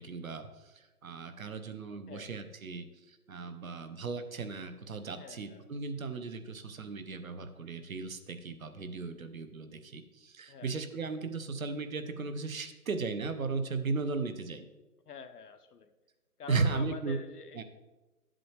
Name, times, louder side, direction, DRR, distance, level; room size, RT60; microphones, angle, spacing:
voice 1, 0.0-14.7 16.5-17.2 17.6-17.7, right 4 dB, 65° right, 9 dB, 1.0 m, -36 dB
voice 2, 5.1-5.7 10.5-10.8 15.0-15.9 16.4-17.6, left 6 dB, 90° left, 8 dB, 0.9 m, -47 dB
10.0 x 7.7 x 3.3 m, 1.1 s
hypercardioid pair, 165°, 45 cm